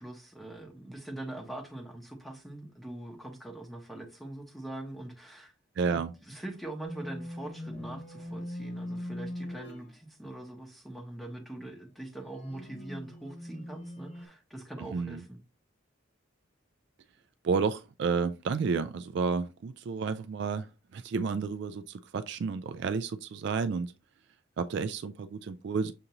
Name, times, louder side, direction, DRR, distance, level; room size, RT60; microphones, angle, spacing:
voice 1, 0.0-5.5 5.9-15.4, right 1 dB, ahead, 0.8 m, -43 dB
voice 2, 5.8-6.1 14.8-15.2 17.4-23.9 24.6-25.9, right 5 dB, 60° right, 0.3 m, -31 dB
sound 1, 6.8-10.0 12.2-14.3, left 1 dB, 30° left, 0.7 m, -40 dB
6.6 x 2.6 x 2.9 m
head